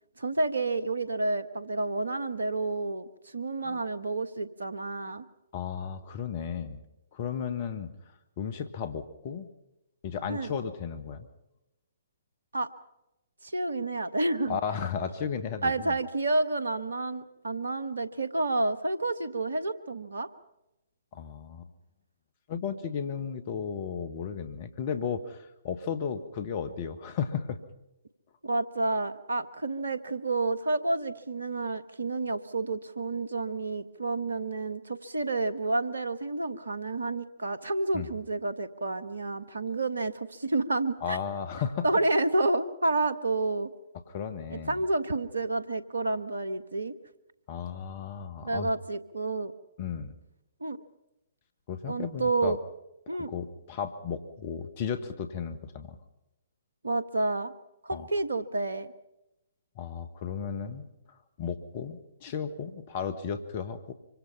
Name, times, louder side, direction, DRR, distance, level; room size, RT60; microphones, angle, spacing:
voice 1, 0.2-5.2 10.3-10.5 12.5-12.7 13.4-14.6 15.6-20.3 28.4-41.2 41.8-43.7 44.5-46.9 48.4-49.5 50.6-50.8 51.9-52.6 53.1-53.3 56.8-57.5 57.8-58.9, right 2 dB, 75° right, 13 dB, 1.3 m, -30 dB
voice 2, 5.5-6.8 7.1-7.9 8.4-9.5 10.0-11.3 14.5-16.0 21.1-21.7 22.5-27.6 37.9-38.1 41.0-41.9 44.1-44.8 47.5-48.7 49.8-50.1 51.7-52.6 53.3-56.0 57.9-58.1 59.8-60.9 61.4-63.9, left 7 dB, 40° left, 12 dB, 1.7 m, -34 dB
25.0 x 24.5 x 5.7 m, 0.92 s
figure-of-eight pair, 125°, 0 cm